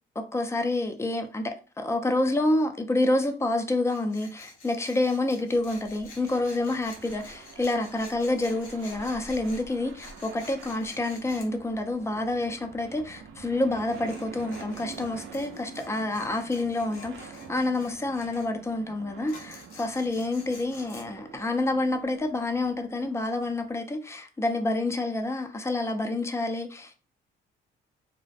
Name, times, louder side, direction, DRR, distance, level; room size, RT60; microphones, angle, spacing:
voice 1, 0.3-27.0, left 2 dB, 15° left, 0.4 m, -28 dB
Tools, 3.9-11.5 13.7-18.5 19.3-21.0, left 3 dB, 85° left, 0.7 m, -49 dB
sound 1, 5.5-23.8, right 6 dB, 75° right, 0.5 m, -47 dB
2.4 x 2.1 x 2.5 m
cardioid pair, 90°, 20 cm